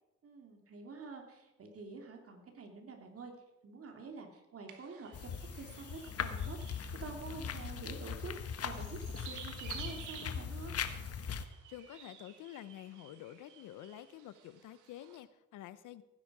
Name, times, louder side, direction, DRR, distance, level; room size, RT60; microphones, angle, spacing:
voice 1, 0.2-3.3 3.6-10.7, right 4 dB, 50° right, 4 dB, 2.8 m, -48 dB
sound 1, 4.7-15.2, right 8 dB, 85° right, 1.7 m, -53 dB
sound 2, 5.1-11.4, left 7 dB, 50° left, 1.2 m, -40 dB
voice 2, 11.7-16.0, left 12 dB, 80° left, 15 dB, 0.8 m, -49 dB
16.5 x 10.0 x 4.9 m, 0.99 s
cardioid pair, 90°, 30 cm